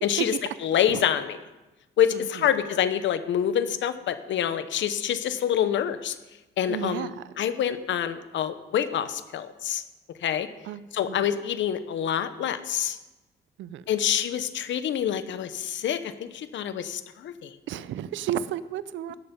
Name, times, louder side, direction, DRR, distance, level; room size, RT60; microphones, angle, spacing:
voice 1, 0.0-1.4 2.0-6.2 6.6-9.8 10.2-10.5 10.9-13.0 13.9-17.5, left 9 dB, 70° left, 12 dB, 0.9 m, -26 dB
voice 2, 6.7-7.2 10.7-11.2 13.6-13.8 17.7-19.1, right 10 dB, 75° right, 16 dB, 0.5 m, -33 dB
18.0 x 6.8 x 5.3 m, 1.1 s
cardioid pair, 90°, 20 cm